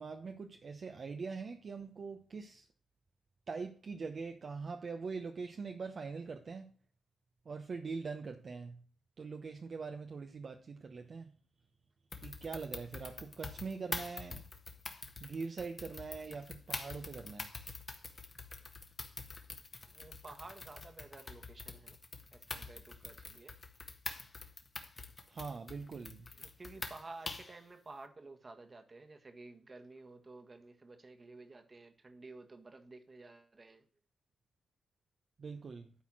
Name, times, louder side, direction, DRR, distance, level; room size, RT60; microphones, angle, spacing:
voice 1, 0.0-2.7 3.5-6.7 7.5-8.8 9.2-11.3 12.2-14.5 15.2-17.5 25.3-26.3 35.4-35.9, right 4 dB, 50° right, 0.9 m, -43 dB
sound 1, 12.1-27.6, left 3 dB, 40° left, 1.5 m, -45 dB
voice 2, 19.9-22.0 22.3-23.5 26.4-33.9, right 3 dB, 35° right, 1.5 m, -52 dB
11.5 x 4.2 x 6.2 m
supercardioid pair, 55°, 0 cm